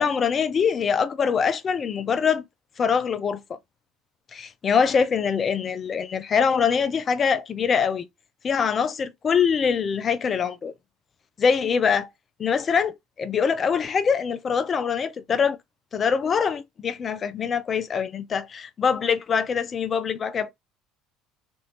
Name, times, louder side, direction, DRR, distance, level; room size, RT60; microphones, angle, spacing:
voice 1, 0.0-2.4 2.8-3.4 4.3-8.1 8.4-10.7 11.4-12.1 12.4-15.6 15.9-20.5, left 6 dB, 40° left, 0.4 m, -23 dB
3.1 x 2.6 x 2.9 m
hypercardioid pair, 70°, 0 cm